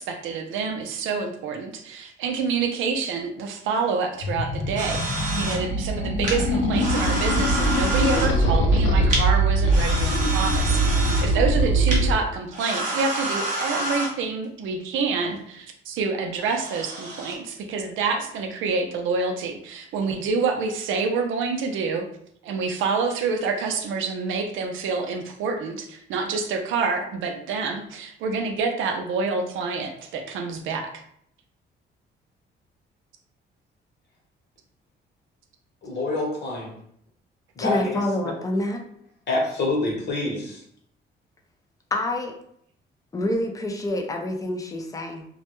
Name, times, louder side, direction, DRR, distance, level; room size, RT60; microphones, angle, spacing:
voice 1, 0.0-22.0 22.4-30.9, right 4 dB, 80° right, 5 dB, 0.5 m, -27 dB
sound 1, 4.2-12.1, right 1 dB, 80° left, 0.5 m, -22 dB
sound 2, 4.8-5.6 6.2-6.4 6.7-8.3 9.1-9.2 9.7-11.3 11.9-12.0 12.5-14.1 16.3-17.3, right 2 dB, 40° right, 0.8 m, -29 dB
voice 2, 35.8-36.7 37.6-38.3 39.3-40.6, left 2 dB, 60° left, -2 dB, 1.0 m, -27 dB
voice 3, 37.6-38.8 41.9-42.3 43.1-45.2, left 1 dB, 15° left, 2 dB, 0.5 m, -27 dB
2.2 x 2.1 x 2.9 m, 0.68 s
cardioid pair, 90°, 20 cm